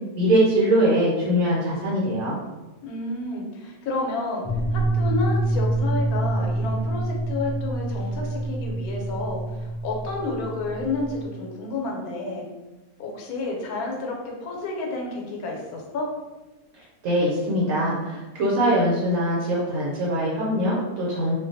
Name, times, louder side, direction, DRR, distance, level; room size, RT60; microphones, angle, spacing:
voice 1, 0.2-2.4 17.0-21.3, equal, 75° right, -6 dB, 1.1 m, -22 dB
voice 2, 2.8-12.4 13.0-16.1, left 3 dB, 85° left, 0 dB, 1.1 m, -30 dB
sound 1, 4.4-11.3, right 2 dB, 60° left, 0.9 m, -26 dB
2.5 x 2.2 x 2.6 m, 1.1 s
omnidirectional pair, 1.5 m